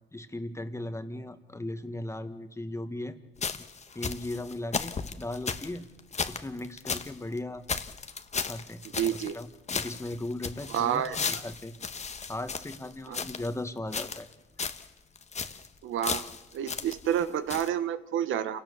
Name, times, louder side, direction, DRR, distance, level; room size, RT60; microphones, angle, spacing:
voice 1, 0.1-3.2 3.6-3.7 4.0-5.8 6.3-7.6 8.4-9.5 9.7-11.8 12.3-14.3, left 1 dB, 15° left, 8 dB, 1.8 m, -37 dB
sound 1, 3.4-7.1 7.4-7.5 7.7-9.4 9.7-13.5 13.9-14.3 14.6-14.9 15.2-15.7 16.0-17.2 17.5-17.7, left 5 dB, 35° left, 1.3 m, -35 dB
voice 2, 8.9-9.4 10.7-11.4 13.1-13.2 15.8-16.2 16.5-18.6, right 10 dB, 80° right, 12 dB, 1.1 m, -29 dB
28.0 x 17.5 x 7.1 m, 1.1 s
cardioid pair, 90°, 20 cm